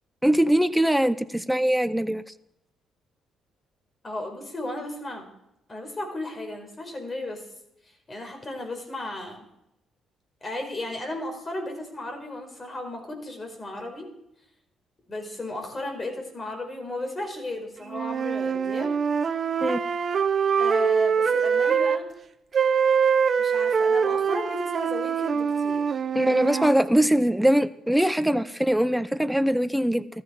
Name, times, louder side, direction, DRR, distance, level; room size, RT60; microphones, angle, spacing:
voice 1, 0.2-2.3 19.6-19.8 26.1-30.1, right 1 dB, 5° right, 14 dB, 0.8 m, -22 dB
voice 2, 4.0-5.3 5.7-7.4 8.1-9.4 10.4-14.1 15.1-18.9 20.6-22.0 23.4-26.7, left 1 dB, 30° left, 4 dB, 4.8 m, -35 dB
sound 1, 17.9-22.0 22.5-26.8, right 6 dB, 45° right, 0.9 m, -24 dB
14.0 x 14.0 x 5.3 m, 0.83 s
cardioid pair, 75°, 0 cm